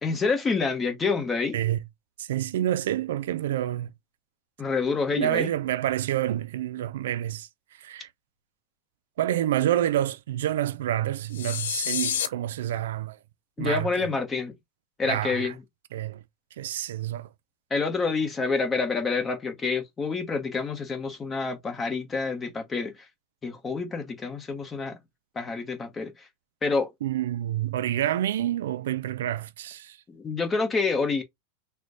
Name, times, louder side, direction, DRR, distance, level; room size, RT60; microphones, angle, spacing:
voice 1, 0.0-1.6 4.6-5.5 13.6-14.5 15.0-15.6 17.7-22.9 23.4-25.0 25.4-26.1 26.6-26.9 30.1-31.2, left 4 dB, 15° left, 1.0 m, -27 dB
voice 2, 2.2-3.9 5.1-7.5 7.8-8.1 9.2-13.2 13.6-13.9 15.0-15.5 15.9-16.2 16.6-17.3 27.0-30.0, right 12 dB, 80° right, 0.4 m, -28 dB
sound 1, 11.3-12.3, left 9 dB, 85° left, 0.6 m, -28 dB
3.1 x 2.2 x 3.9 m
supercardioid pair, 135°, 0 cm